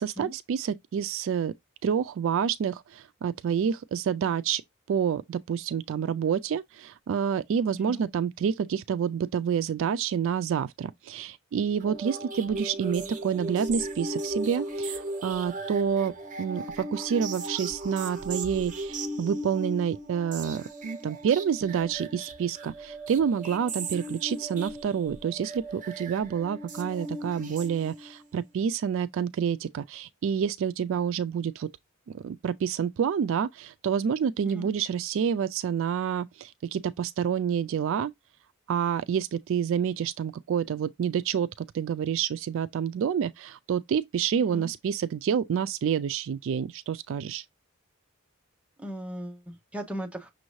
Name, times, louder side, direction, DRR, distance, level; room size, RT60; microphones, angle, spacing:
voice 1, 0.0-1.5 1.8-4.6 4.9-16.1 16.4-31.7 32.1-38.1 38.7-47.4, right 7 dB, 65° right, 0.3 m, -28 dB
sound 1, 11.8-28.2, right 2 dB, 40° right, 0.9 m, -37 dB
voice 2, 48.8-50.3, equal, 5° right, 0.8 m, -37 dB
6.2 x 2.6 x 3.0 m
head